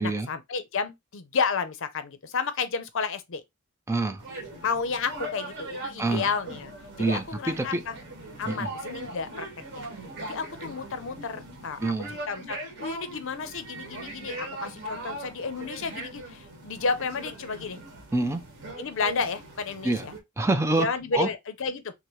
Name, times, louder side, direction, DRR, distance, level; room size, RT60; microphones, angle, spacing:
voice 1, 0.0-3.4 4.6-6.7 7.0-7.9 8.4-9.5 9.7-9.9 10.2-17.8 18.8-20.1 20.8-21.9, left 5 dB, 60° left, 0.6 m, -31 dB
voice 2, 3.9-4.2 6.0-6.3 7.0-7.8 8.5-8.7 11.8-12.1 18.1-18.4 19.8-20.1 20.4-20.9 21.1-21.3, right 2 dB, 15° right, 0.4 m, -26 dB
sound 1, 4.2-20.2, right 1 dB, 55° right, 1.5 m, -40 dB
6.0 x 2.1 x 3.0 m
head